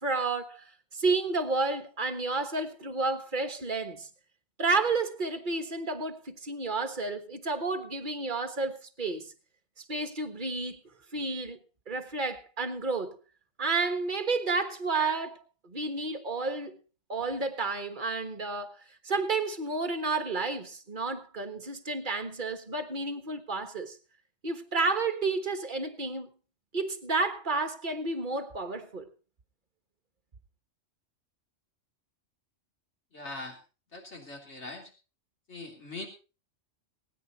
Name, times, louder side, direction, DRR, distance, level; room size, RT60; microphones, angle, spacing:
voice 1, 0.0-4.1 4.6-9.3 9.9-10.8 11.1-11.6 11.9-13.2 13.6-15.4 15.6-16.8 17.1-24.0 24.4-26.3 26.7-29.1, right 3 dB, 40° right, 1.5 m, -31 dB
voice 2, 33.1-33.6 33.9-34.9 35.5-36.1, left 2 dB, 65° left, 3.7 m, -41 dB
21.5 x 9.9 x 4.0 m
omnidirectional pair, 1.3 m